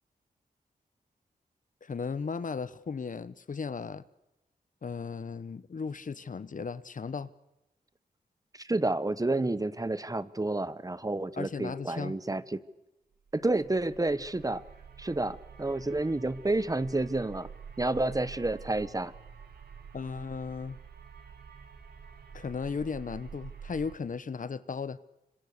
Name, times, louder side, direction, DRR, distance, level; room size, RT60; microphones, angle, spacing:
voice 1, 1.8-4.0 4.8-7.3 11.4-12.2 19.9-20.8 22.3-25.0, left 5 dB, 55° left, 1.0 m, -36 dB
voice 2, 8.5-12.6 13.3-14.6 15.0-17.5 17.8-19.1, right 2 dB, 20° right, 1.0 m, -30 dB
sound 1, 13.3-23.9, right 6 dB, 90° right, 2.4 m, -48 dB
25.5 x 25.5 x 6.7 m
cardioid pair, 65°, 16 cm